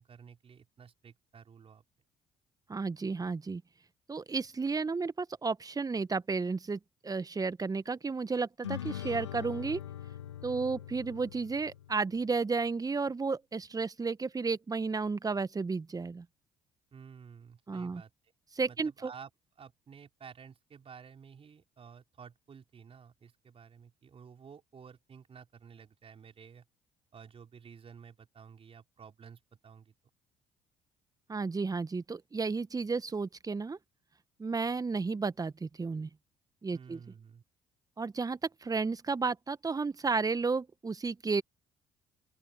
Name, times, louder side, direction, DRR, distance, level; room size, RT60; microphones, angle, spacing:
voice 1, 0.0-1.8 16.9-18.3 18.7-19.3 19.6-26.7 27.1-29.9 36.7-37.4, right 6 dB, 40° right, 5.0 m, -52 dB
voice 2, 2.7-3.6 4.1-9.8 10.4-16.2 17.7-18.0 18.6-19.1 31.3-33.8 34.4-36.1 36.6-37.0 38.0-41.4, right 4 dB, 25° right, 1.5 m, -32 dB
sound 1, 8.6-12.2, left 11 dB, 85° left, 0.6 m, -42 dB
open air
figure-of-eight pair, 50°, 15 cm